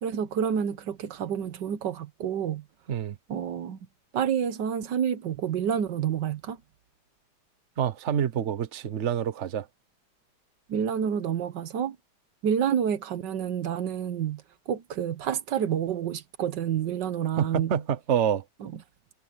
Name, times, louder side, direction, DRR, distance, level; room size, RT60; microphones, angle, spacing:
voice 1, 0.0-2.6 3.3-3.8 4.1-6.6 10.7-12.0 12.4-17.7 18.6-18.7, right 8 dB, 80° right, 1.6 m, -29 dB
voice 2, 7.8-9.7 17.4-18.4, right 8 dB, 45° right, 1.2 m, -27 dB
omnidirectional pair, 1.9 m